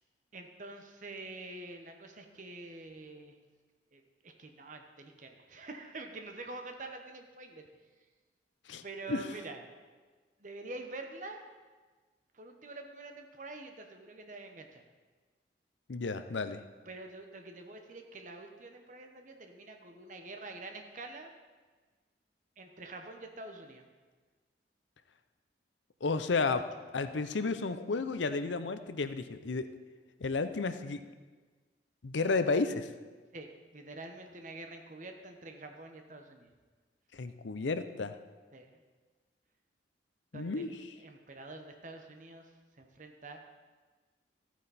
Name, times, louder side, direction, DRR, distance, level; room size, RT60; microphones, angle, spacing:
voice 1, 0.3-3.3 3.9-7.7 8.8-9.6 10.4-11.5 12.3-14.8 16.9-21.3 22.6-23.8 33.3-36.5 38.5-38.7 40.3-42.5 42.8-43.4, right 2 dB, 45° right, 4 dB, 1.1 m, -46 dB
voice 2, 15.9-16.6 26.0-26.6 26.9-29.7 30.2-31.0 32.0-32.9 37.1-38.1 40.3-40.7, left 4 dB, 85° left, 11 dB, 0.6 m, -32 dB
14.0 x 9.1 x 4.2 m, 1.4 s
head